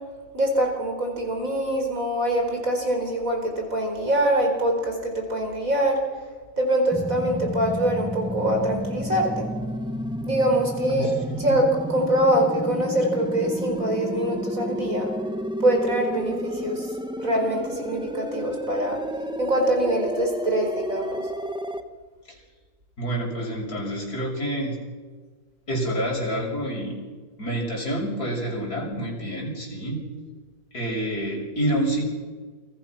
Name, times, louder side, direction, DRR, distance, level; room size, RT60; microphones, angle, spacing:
voice 1, 0.3-6.0 6.6-9.5 10.2-11.1 11.4-15.1 15.6-16.9 17.2-19.0 19.4-21.2, right 1 dB, 60° right, 3 dB, 4.9 m, -24 dB
sound 1, 6.9-21.8, equal, 5° right, 1.2 m, -31 dB
voice 2, 10.9-11.4 23.0-24.8 25.7-27.0 27.4-30.0 30.7-32.1, right 1 dB, 80° left, -1 dB, 7.2 m, -28 dB
29.5 x 24.0 x 6.0 m, 1.4 s
omnidirectional pair, 1.6 m